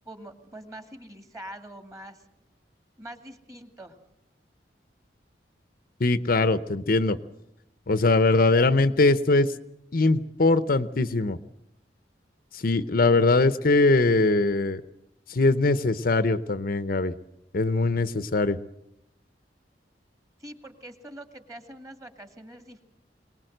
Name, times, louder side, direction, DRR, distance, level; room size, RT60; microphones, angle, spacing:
voice 1, 0.1-2.2 3.0-4.0 20.4-22.8, right 1 dB, 20° right, 7 dB, 2.2 m, -44 dB
voice 2, 6.0-7.2 7.9-9.5 9.9-11.4 12.5-14.8 15.3-17.1 17.5-18.6, left 3 dB, 55° left, 13 dB, 0.8 m, -21 dB
23.0 x 19.5 x 7.9 m, 0.83 s
head